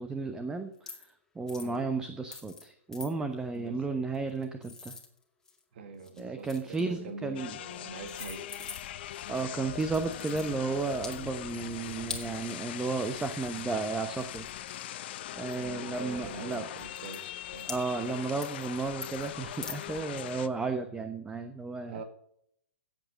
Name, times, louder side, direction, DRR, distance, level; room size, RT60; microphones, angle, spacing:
voice 1, 0.0-5.0 6.2-7.6 9.0-14.5 15.3-16.7 17.7-22.0, right 3 dB, 10° right, 1.0 m, -33 dB
sound 1, 0.8-1.1 1.5-1.8 2.3-2.7 2.9-3.1 4.1-5.6 6.0-6.9 7.7-7.8 8.0-9.1 9.8-10.5 11.0-11.2 12.1-12.3 13.8-13.9 14.2-15.3 16.0-16.1 16.5-16.6 16.9-17.2 17.7-18.2 18.4-18.6 19.0-19.3 19.6-19.8, left 4 dB, 10° left, 2.2 m, -43 dB
voice 2, 3.5-4.0 5.7-8.7 15.5-17.7 21.9-22.0, right 4 dB, 55° right, 2.1 m, -44 dB
sound 2, 7.4-20.5, left 12 dB, 50° left, 0.9 m, -41 dB
15.0 x 8.1 x 5.2 m
figure-of-eight pair, 115°, 7 cm